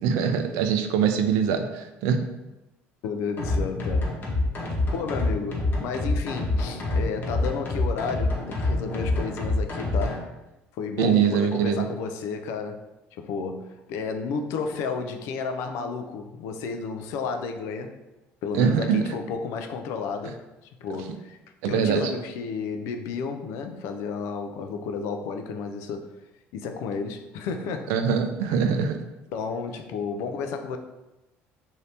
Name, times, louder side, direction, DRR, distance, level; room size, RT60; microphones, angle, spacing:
voice 1, 0.0-2.2 11.0-11.9 18.5-19.1 21.6-22.1 27.9-29.0, right 7 dB, 85° right, 7 dB, 0.4 m, -23 dB
voice 2, 3.0-4.2 4.9-10.3 10.8-12.8 13.1-18.0 18.4-20.4 20.8-21.4 21.7-26.1 26.5-27.9 29.3-30.8, left 5 dB, 80° left, 6 dB, 0.4 m, -32 dB
sound 1, 3.4-10.2, left 2 dB, 40° left, 0.9 m, -26 dB
2.7 x 2.7 x 3.3 m, 1.0 s
cardioid pair, 105°, 5 cm